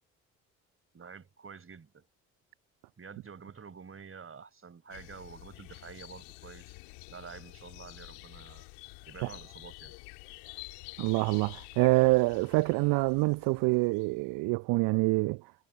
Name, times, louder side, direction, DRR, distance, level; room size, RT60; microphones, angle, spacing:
voice 1, 0.9-2.1 3.0-6.8 7.1-8.6 9.0-10.0, right 6 dB, 35° right, 6.6 m, -48 dB
sound 1, 4.9-14.3, left 34 dB, 70° left, 2.8 m, -49 dB
voice 2, 11.0-15.4, right 25 dB, 60° right, 0.7 m, -26 dB
figure-of-eight pair, 50°, 40 cm